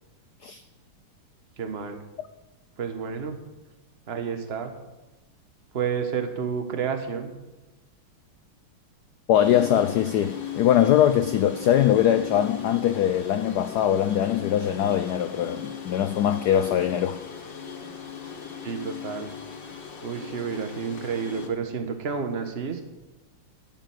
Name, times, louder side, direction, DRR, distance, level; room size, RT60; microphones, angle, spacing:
voice 1, 1.6-2.0 2.8-3.4 4.1-4.7 5.7-7.3 18.6-19.3 20.0-22.8, right 6 dB, 35° right, 1.2 m, -30 dB
voice 2, 9.3-17.2, left 10 dB, 85° left, 0.8 m, -22 dB
sound 1, 9.4-21.5, left 8 dB, 55° left, 2.2 m, -38 dB
10.5 x 7.4 x 9.1 m
omnidirectional pair, 2.4 m